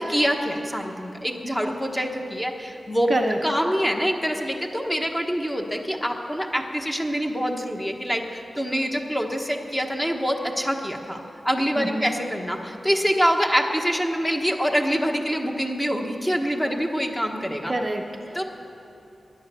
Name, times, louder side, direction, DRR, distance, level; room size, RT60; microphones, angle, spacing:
voice 1, 0.0-3.1 3.4-11.2 11.4-17.7 18.3-18.4, equal, 10° left, 2 dB, 1.2 m, -25 dB
voice 2, 11.8-12.1 17.7-18.4, right 1 dB, 25° right, 3 dB, 0.8 m, -26 dB
19.0 x 11.0 x 6.9 m, 2.8 s
wide cardioid pair, 160°, 0 cm